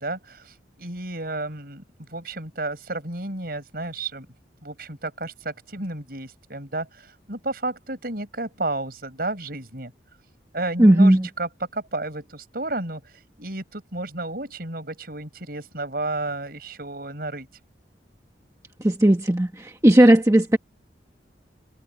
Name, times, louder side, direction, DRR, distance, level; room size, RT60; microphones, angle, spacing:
voice 1, 0.0-1.8 2.1-4.3 4.6-9.9 10.5-13.1 13.4-17.5, right 2 dB, 55° right, 5.6 m, -32 dB
voice 2, 10.8-11.3 18.8-20.6, right 1 dB, 15° right, 1.1 m, -16 dB
head